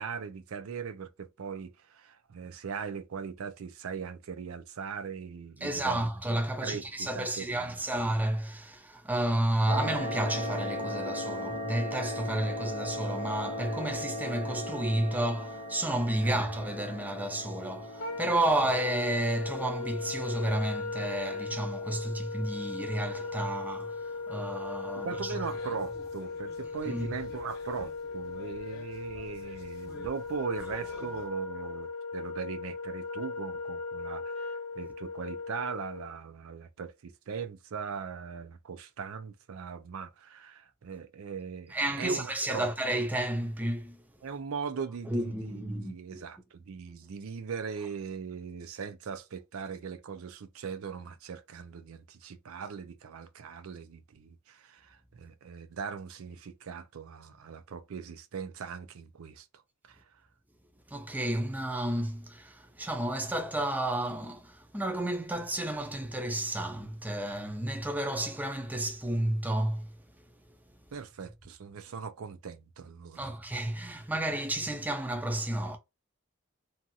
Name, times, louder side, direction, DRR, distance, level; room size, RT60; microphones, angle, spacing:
voice 1, 0.0-6.0 6.6-7.8 16.2-16.4 24.9-42.7 44.2-60.0 70.9-73.3, right 6 dB, 80° right, 0.4 m, -40 dB
voice 2, 5.6-25.3 26.9-27.1 41.7-44.0 45.1-46.2 60.9-69.9 73.2-75.8, right 1 dB, 10° right, 0.4 m, -31 dB
sound 1, 9.7-20.5, left 1 dB, 60° right, 1.1 m, -38 dB
Wind instrument woodwind instrument, 18.0-36.1, left 4 dB, 85° left, 0.6 m, -38 dB
sound 2, 25.3-31.3, left 2 dB, 50° left, 0.8 m, -50 dB
2.6 x 2.4 x 2.6 m
head